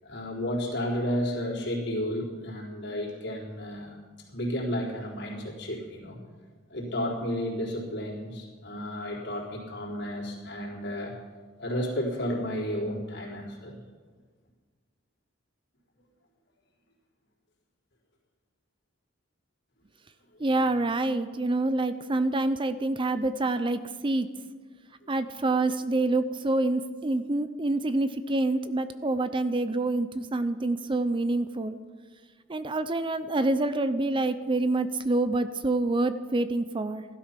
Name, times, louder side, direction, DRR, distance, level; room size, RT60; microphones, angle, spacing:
voice 1, 0.0-4.0 4.3-6.2 6.7-11.2 11.6-13.8, equal, 55° left, -3 dB, 3.8 m, -32 dB
voice 2, 20.4-24.3 25.1-31.8 32.5-37.0, right 2 dB, 25° right, 12 dB, 0.5 m, -27 dB
15.5 x 12.5 x 5.8 m, 1.5 s
head